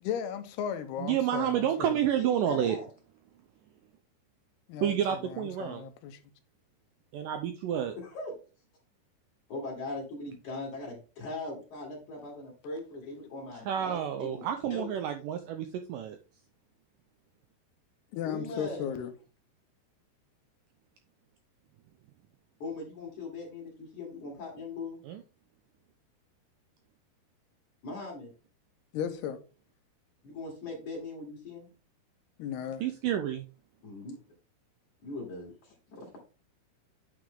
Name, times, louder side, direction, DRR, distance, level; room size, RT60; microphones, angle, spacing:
voice 1, 0.0-2.0 4.7-6.2 18.1-19.1 28.9-29.4 32.4-32.9, left 8 dB, 80° left, 2.9 m, -35 dB
voice 2, 1.0-2.8 4.8-5.9 7.1-8.0 13.7-16.2 25.1-25.2 32.8-33.5, right 10 dB, 90° right, 1.9 m, -29 dB
voice 3, 2.1-2.9 7.9-8.3 9.5-14.4 14.7-14.9 18.2-18.9 22.6-25.0 27.8-28.3 30.2-31.7 33.8-34.2 35.0-36.1, left 2 dB, 55° left, 3.3 m, -40 dB
9.2 x 5.0 x 3.7 m
omnidirectional pair, 4.6 m